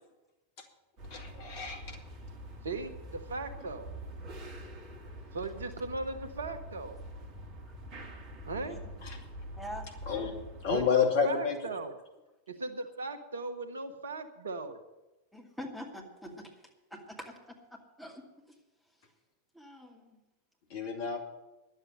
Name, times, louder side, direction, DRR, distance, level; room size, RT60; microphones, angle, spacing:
sound 1, 1.0-10.8, equal, 35° right, 2.0 m, -45 dB
voice 1, 1.1-2.0 9.0-9.2 10.1-10.3 10.6-11.6 20.7-21.3, left 6 dB, 50° left, 3 dB, 2.5 m, -30 dB
voice 2, 2.6-3.9 5.3-7.0 8.5-8.8 10.7-11.9 12.5-14.8, right 3 dB, 70° right, 9 dB, 1.1 m, -38 dB
voice 3, 9.6-9.9 15.3-16.5 16.9-18.6 19.5-20.2, equal, ahead, -1 dB, 2.5 m, -45 dB
11.5 x 8.0 x 9.9 m, 1.0 s
figure-of-eight pair, 90°, 0 cm